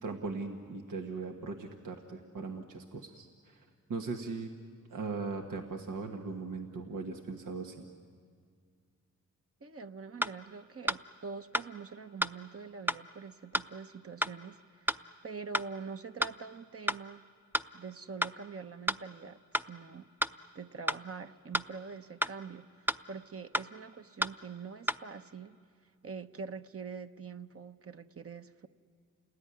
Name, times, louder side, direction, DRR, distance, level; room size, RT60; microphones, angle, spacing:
voice 1, 0.0-4.5 4.9-7.9, right 4 dB, 90° right, 3 dB, 1.5 m, -39 dB
voice 2, 9.6-17.2 17.7-20.1 20.5-25.6 26.0-28.7, right 5 dB, 50° right, 8 dB, 1.0 m, -45 dB
sound 1, 10.2-10.3 10.9-11.0 11.5-11.7 12.2-12.3 12.9-13.0 13.5-13.7 14.2-14.3 14.9-15.0 15.5-15.7 16.2-16.3 16.9-17.0 17.5-17.7 18.2-18.3 18.9-19.0 19.5-19.7 20.2-20.3 20.9-21.0 21.5-21.7 22.2-22.3 22.9-23.0 23.5-23.7 24.2-24.3 24.9-25.0, equal, 5° right, 0.6 m, -30 dB
29.0 x 19.5 x 9.8 m, 2.1 s
cardioid pair, 60°, 30 cm